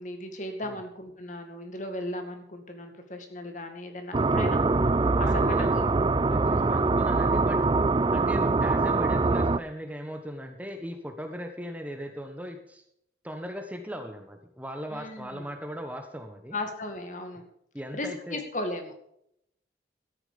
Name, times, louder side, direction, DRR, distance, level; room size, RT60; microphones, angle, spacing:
voice 1, 0.0-4.6 5.2-5.9 6.4-6.8 14.9-15.4 16.5-17.4 17.9-18.9, left 1 dB, 45° left, 5 dB, 2.2 m, -36 dB
sound 1, 4.1-9.6, right 3 dB, 25° right, 0.4 m, -23 dB
voice 2, 5.2-5.8 6.3-7.6 8.1-12.8 13.2-16.6 17.7-18.4, equal, 10° right, 5 dB, 1.2 m, -38 dB
13.5 x 10.0 x 5.2 m, 0.73 s
head